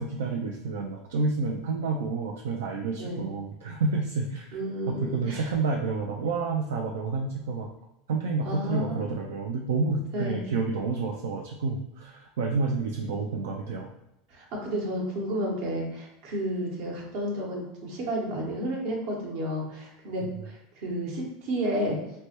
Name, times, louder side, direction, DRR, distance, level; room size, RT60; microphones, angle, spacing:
voice 1, 0.0-4.6 4.9-7.7 8.1-13.9 20.2-20.3, right 4 dB, 85° right, 1 dB, 0.3 m, -29 dB
voice 2, 4.5-5.5 8.4-9.1 10.1-10.4 14.3-22.0, equal, 65° right, 0 dB, 0.9 m, -31 dB
3.2 x 2.1 x 2.9 m, 0.85 s
hypercardioid pair, 105°, 0 cm